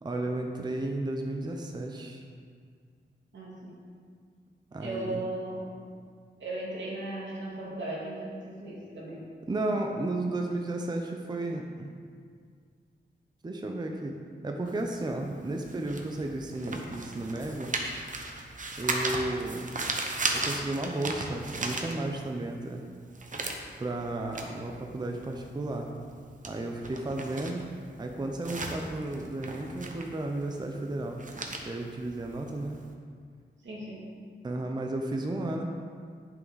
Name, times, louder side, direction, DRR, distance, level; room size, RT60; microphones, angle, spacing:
voice 1, 0.0-2.2 4.7-5.2 9.5-11.9 13.4-14.2 14.4-17.7 18.8-19.7 20.3-22.9 23.8-25.9 26.5-27.6 28.0-31.2 31.7-32.8 34.4-35.6, right 2 dB, 25° right, 2 dB, 0.6 m, -33 dB
voice 2, 3.3-3.8 4.8-5.6 6.4-9.2 33.6-34.0, right 1 dB, 80° right, -5 dB, 2.3 m, -37 dB
sound 1, 14.7-22.4 22.8-32.8, right 2 dB, 45° right, 0.9 m, -36 dB
11.0 x 6.0 x 4.0 m, 2.1 s
wide cardioid pair, 150°, 19 cm